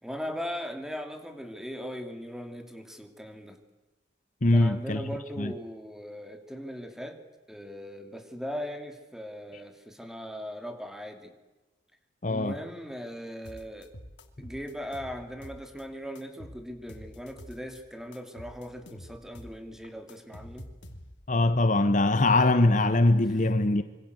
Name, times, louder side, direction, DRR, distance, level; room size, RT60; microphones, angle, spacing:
voice 1, 0.0-3.6 4.5-7.2 7.5-11.3 12.3-13.9 14.4-20.7 23.3-23.6, equal, 5° right, 2.8 m, -39 dB
voice 2, 4.4-5.0 5.4-5.5 12.2-12.6 21.3-23.8, left 2 dB, 45° left, 1.2 m, -22 dB
sound 1, 13.5-15.8 16.2-17.8 18.1-21.3, equal, 85° left, 2.8 m, -47 dB
26.0 x 24.5 x 8.1 m
head